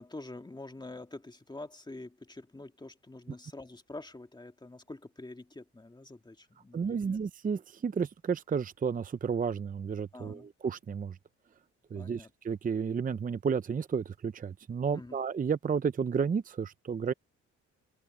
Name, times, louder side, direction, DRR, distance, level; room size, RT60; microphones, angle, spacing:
voice 1, 0.0-7.2 10.1-10.5 11.9-12.3 14.9-15.2, left 2 dB, 15° left, 2.2 m, -46 dB
voice 2, 6.7-11.2 11.9-17.1, right 6 dB, 30° right, 0.6 m, -32 dB
open air
cardioid pair, 90°, 30 cm